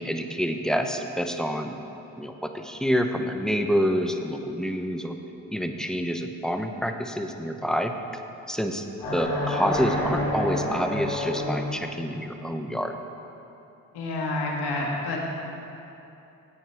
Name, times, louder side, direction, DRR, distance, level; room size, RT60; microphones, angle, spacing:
voice 1, 0.0-1.8 2.2-5.2 5.5-7.9 8.5-13.0, equal, ahead, 6 dB, 0.7 m, -27 dB
sound 1, 9.0-11.9, left 1 dB, 85° left, 2.5 m, -28 dB
voice 2, 13.9-15.2, left 2 dB, 70° left, -1 dB, 1.7 m, -28 dB
10.0 x 8.0 x 4.6 m, 2.9 s
hypercardioid pair, 50°, 42 cm